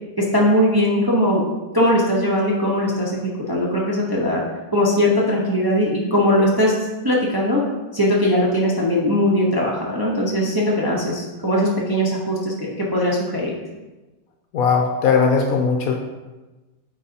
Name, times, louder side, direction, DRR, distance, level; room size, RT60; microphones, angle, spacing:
voice 1, 0.3-1.4 1.7-3.1 3.5-4.4 4.7-6.7 7.0-7.6 7.9-13.5, equal, 20° right, -4 dB, 0.7 m, -19 dB
voice 2, 14.5-16.0, left 5 dB, 65° left, 2 dB, 1.0 m, -18 dB
8.2 x 4.7 x 2.8 m, 1.1 s
omnidirectional pair, 1.8 m